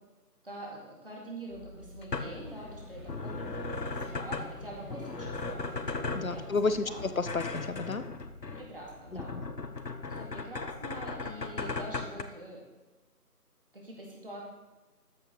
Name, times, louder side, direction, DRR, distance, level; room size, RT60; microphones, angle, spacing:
voice 1, 0.4-5.7 6.2-7.0 8.4-9.3 10.1-12.6 13.7-14.4, right 1 dB, 35° right, -2 dB, 2.3 m, -45 dB
sound 1, 1.5-12.2, left 3 dB, 85° left, 1.0 m, -38 dB
Male speech man speaking / Child speech kid speaking / Chatter, 2.1-7.8, left 1 dB, 5° right, 2.3 m, -47 dB
voice 2, 6.1-8.0 9.1-9.4, left 3 dB, 60° left, 11 dB, 0.8 m, -31 dB
13.5 x 6.1 x 4.0 m, 1.2 s
figure-of-eight pair, 165°, 48 cm